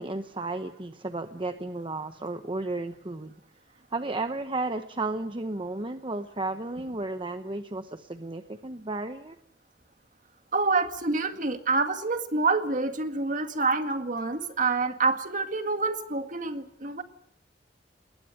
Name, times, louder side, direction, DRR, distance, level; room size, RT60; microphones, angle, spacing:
voice 1, 0.0-3.3 3.9-9.4, right 2 dB, 30° right, 8 dB, 0.9 m, -33 dB
voice 2, 10.5-17.0, right 3 dB, 50° right, 7 dB, 2.0 m, -27 dB
20.5 x 18.5 x 9.1 m, 0.73 s
head